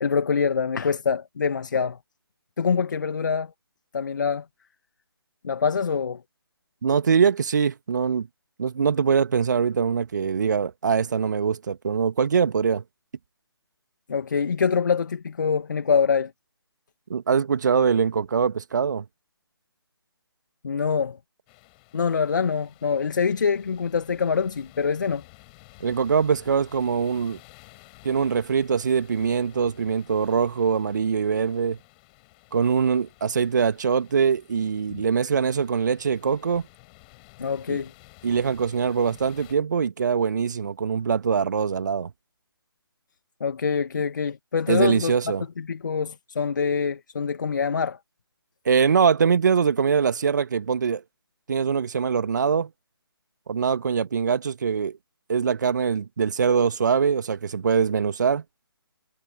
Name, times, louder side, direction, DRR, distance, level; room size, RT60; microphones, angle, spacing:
voice 1, 0.0-2.0 2.6-3.5 3.9-4.4 5.4-6.2 14.1-16.3 20.6-21.2 21.9-25.2 34.9-35.0 37.4-37.9 43.4-45.1 45.6-48.0, left 6 dB, 50° left, 1.7 m, -25 dB
voice 2, 6.8-8.3 8.6-12.8 17.1-19.0 25.8-27.4 28.0-31.8 32.5-36.6 37.7-37.8 38.2-42.1 44.7-45.4 48.7-51.0 51.5-52.7 53.5-55.0 55.3-58.4, right 6 dB, 45° right, 1.9 m, -23 dB
sound 1, 21.5-39.6, left 27 dB, 20° left, 5.5 m, -53 dB
figure-of-eight pair, 145°, 13 cm